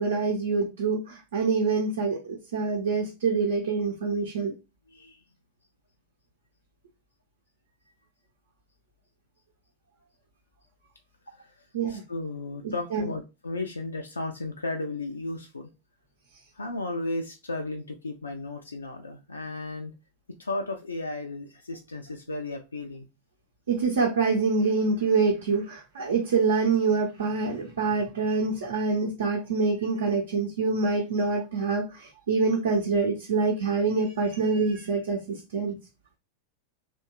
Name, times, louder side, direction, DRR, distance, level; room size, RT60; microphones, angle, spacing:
voice 1, 0.0-4.5 11.7-12.0 12.9-13.1 23.7-35.8, right 4 dB, 65° right, 0.6 m, -26 dB
voice 2, 4.9-5.2 11.3-11.5 11.9-15.7 16.6-19.9 20.4-23.1, left 2 dB, 80° left, 0.3 m, -34 dB
2.8 x 2.2 x 2.3 m
figure-of-eight pair, 90°, 0 cm